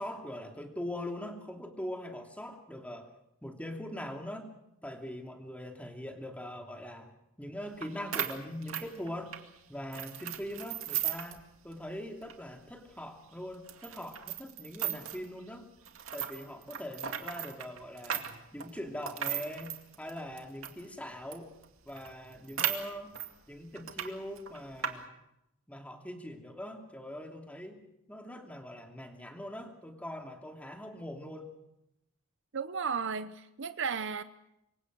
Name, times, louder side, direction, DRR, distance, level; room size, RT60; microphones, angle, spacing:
voice 1, 0.0-3.1 3.4-4.5 4.8-7.1 7.4-9.3 9.7-15.7 16.1-21.5 21.9-23.2 23.5-25.2 25.7-27.8 28.1-31.5, left 1 dB, 5° left, 3 dB, 2.9 m, -42 dB
sound 1, 7.8-7.9 8.1-9.5 9.9-11.4 11.7-11.8 12.2-12.3 12.9-13.0 13.7-15.3 15.9-20.8 21.3-21.4 21.6-21.7 22.0-23.3 23.8-24.1 24.4-24.9, right 10 dB, 80° right, 2.2 m, -36 dB
voice 2, 32.5-34.2, right 6 dB, 60° right, 12 dB, 0.8 m, -34 dB
26.5 x 23.5 x 6.3 m, 0.87 s
head